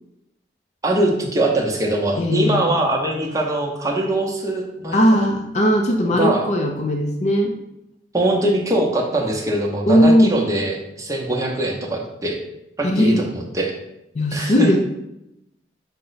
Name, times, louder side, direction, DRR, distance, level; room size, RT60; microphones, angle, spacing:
voice 1, 0.8-5.3 6.2-6.5 8.1-12.4 12.8-13.7 14.3-14.8, right 1 dB, 20° right, 0 dB, 0.7 m, -22 dB
voice 2, 2.2-2.6 4.9-7.5 9.9-10.3 12.8-13.2 14.2-14.8, equal, 40° left, 2 dB, 0.4 m, -18 dB
5.6 x 2.1 x 3.9 m, 0.85 s
head